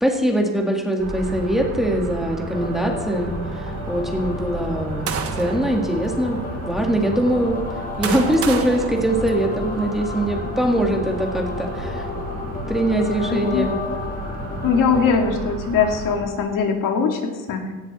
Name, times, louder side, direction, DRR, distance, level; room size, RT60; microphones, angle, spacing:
voice 1, 0.0-6.4 6.6-7.6 8.0-12.1 12.7-13.7, right 1 dB, ahead, 1 dB, 2.0 m, -22 dB
sound 1, 1.0-16.2, right 3 dB, 80° right, 6.5 m, -33 dB
sound 2, 2.5-15.1, left 4 dB, 25° left, 1.5 m, -33 dB
sound 3, 4.6-5.7 6.5-6.6 7.5-9.8, right 6 dB, 45° right, 1.3 m, -31 dB
voice 2, 13.3-13.7 14.6-17.7, left 5 dB, 80° left, 3 dB, 2.4 m, -21 dB
18.0 x 15.5 x 4.3 m, 1.3 s
cardioid pair, 175°, 32 cm